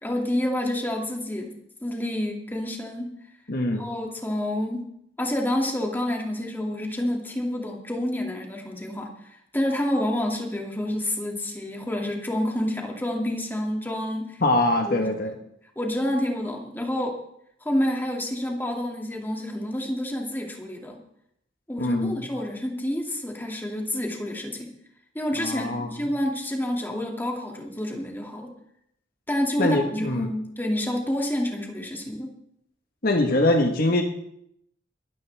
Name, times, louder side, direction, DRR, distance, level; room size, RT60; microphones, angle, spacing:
voice 1, 0.0-1.5 1.8-3.1 3.7-4.8 5.2-14.4 14.8-15.3 15.8-17.2 17.6-21.0 21.7-24.7 25.1-28.5 29.3-32.3, left 1 dB, 10° left, 0 dB, 2.4 m, -28 dB
voice 2, 3.5-3.8 14.4-15.3 21.8-22.3 25.4-26.0 29.6-30.3 33.0-34.0, left 1 dB, 55° left, 4 dB, 1.4 m, -23 dB
21.5 x 13.0 x 3.5 m, 0.74 s
head